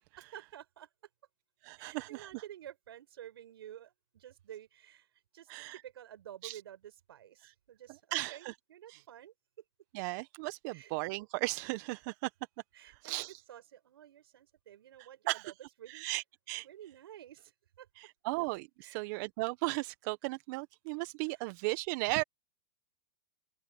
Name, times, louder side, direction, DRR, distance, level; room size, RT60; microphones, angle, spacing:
voice 1, 0.2-0.9 1.8-9.3 10.7-10.9 12.7-15.5 15.8-16.1 16.6-17.5 17.8-17.9 18.8-19.0 21.3-21.4, right 11 dB, 70° right, 5.5 m, -51 dB
voice 2, 1.6-2.4 5.5-5.8 6.4-6.6 8.1-8.5 8.9-9.0 9.9-12.3 12.8-13.3 15.3-15.4 15.9-16.7 18.0-22.2, right 24 dB, 50° right, 1.3 m, -36 dB
hypercardioid pair, 120°, 13 cm